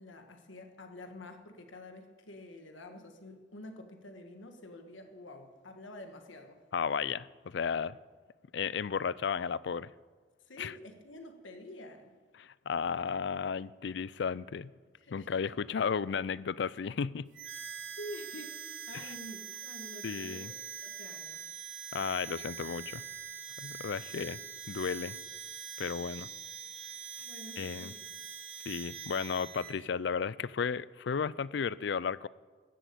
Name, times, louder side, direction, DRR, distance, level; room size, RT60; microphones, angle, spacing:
voice 1, 0.0-6.6 10.5-12.1 14.9-15.5 17.5-17.6 18.0-21.5 24.1-24.2 27.2-28.2, left 1 dB, 90° left, 5 dB, 1.5 m, -48 dB
voice 2, 6.7-8.0 8.5-9.9 10.6-10.7 12.4-14.7 15.1-17.3 18.9-19.1 20.0-20.5 21.9-23.0 23.6-24.4 24.7-25.2 25.8-26.3 27.6-27.9 28.7-32.3, left 6 dB, 65° left, 20 dB, 0.4 m, -34 dB
Harmonica, 17.3-29.8, right 8 dB, 80° right, 3.0 m, -44 dB
14.0 x 7.8 x 8.4 m, 1.4 s
head